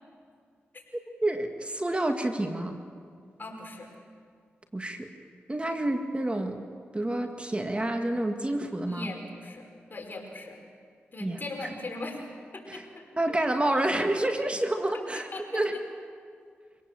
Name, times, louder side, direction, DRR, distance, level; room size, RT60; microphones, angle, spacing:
voice 1, 1.2-2.8 4.7-5.1 5.5-6.6 6.9-9.1 11.2-11.4 12.7-12.8 13.2-15.3 15.5-15.7, right 1 dB, 25° right, 5 dB, 1.9 m, -28 dB
voice 2, 3.4-3.9 8.9-10.6 11.1-12.2 12.5-13.0 15.1-15.8, left 2 dB, 45° left, 1 dB, 5.2 m, -39 dB
25.0 x 17.5 x 7.7 m, 2.2 s
cardioid pair, 45°, 5 cm